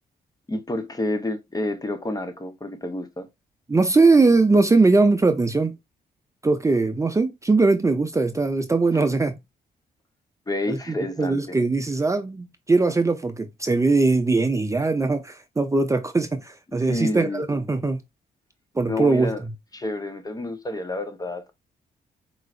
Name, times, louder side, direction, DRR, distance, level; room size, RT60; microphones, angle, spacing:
voice 1, 0.5-3.3 8.9-9.0 10.5-11.6 16.8-17.4 18.9-19.4 19.7-21.5, left 1 dB, 20° left, 0.8 m, -29 dB
voice 2, 3.7-5.8 6.4-9.3 10.7-10.8 11.2-18.0 18.8-19.3, right 3 dB, 20° right, 0.6 m, -20 dB
4.6 x 3.1 x 2.5 m
cardioid pair, 80°, 16 cm